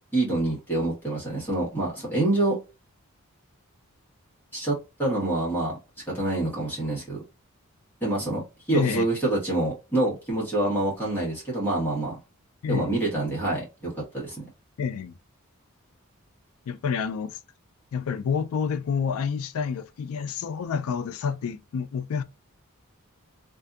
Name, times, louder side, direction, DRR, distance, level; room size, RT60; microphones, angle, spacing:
voice 1, 0.1-2.6 4.5-5.8 6.1-7.2 8.0-8.4 8.7-12.2 12.7-14.5, right 2 dB, 10° left, 1.2 m, -26 dB
voice 2, 8.7-9.1 12.6-13.0 14.8-15.2 16.7-17.4 17.9-22.2, left 6 dB, 70° left, 0.3 m, -28 dB
2.6 x 2.5 x 2.3 m
head